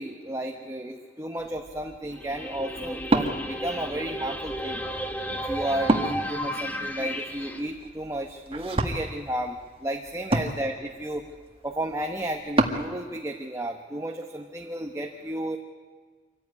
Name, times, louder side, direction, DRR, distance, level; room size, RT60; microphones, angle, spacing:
voice 1, 0.0-4.8 5.3-11.2 11.6-15.6, right 1 dB, 15° right, 3 dB, 1.0 m, -33 dB
Wood, 1.4-12.9, right 1 dB, 30° right, 1.6 m, -32 dB
sound 1, 2.1-7.6, equal, 10° left, 1.6 m, -33 dB
25.5 x 15.0 x 9.7 m, 1.5 s
head